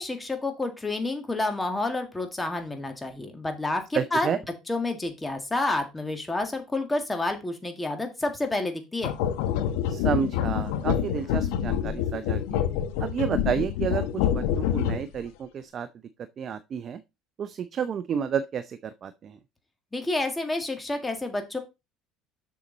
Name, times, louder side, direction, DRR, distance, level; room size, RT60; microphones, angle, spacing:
voice 1, 0.0-4.3 4.7-9.1 19.9-21.6, left 2 dB, 15° left, 2.0 m, -29 dB
voice 2, 3.9-4.4 9.9-12.6 13.0-15.9 16.4-17.0 17.4-19.4, right 7 dB, 40° right, 0.5 m, -30 dB
sound 1, 9.0-15.2, left 9 dB, 85° left, 1.0 m, -27 dB
7.0 x 6.6 x 4.0 m
supercardioid pair, 110°, 0 cm